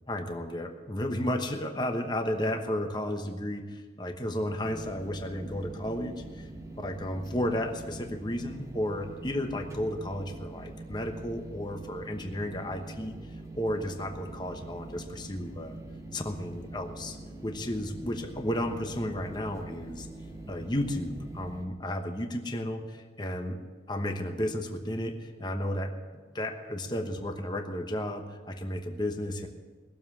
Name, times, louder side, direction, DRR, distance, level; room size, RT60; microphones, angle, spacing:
voice 1, 0.0-3.6 4.0-6.5 6.8-13.2 13.5-15.8 16.1-17.1 17.4-20.1 20.5-23.6 23.9-26.0 26.3-29.5, left 1 dB, 25° left, 5 dB, 1.1 m, -33 dB
sound 1, 4.6-21.6, right 2 dB, 15° right, 1.0 m, -44 dB
19.5 x 7.4 x 7.2 m, 1.4 s
head